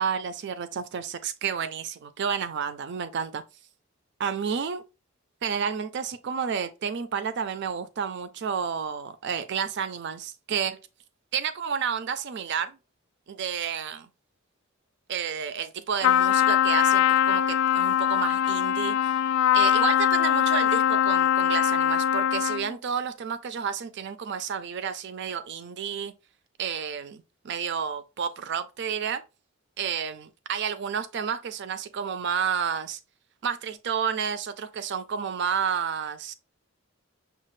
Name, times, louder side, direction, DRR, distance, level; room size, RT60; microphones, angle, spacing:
voice 1, 0.0-3.4 4.2-4.8 5.4-10.8 11.3-12.8 13.3-14.1 15.1-19.0 19.5-26.1 26.6-29.2 29.8-33.0 33.4-36.3, right 7 dB, 60° right, 0.4 m, -30 dB
Trumpet, 16.0-22.7, left 10 dB, 80° left, 0.3 m, -22 dB
6.5 x 2.3 x 3.1 m
head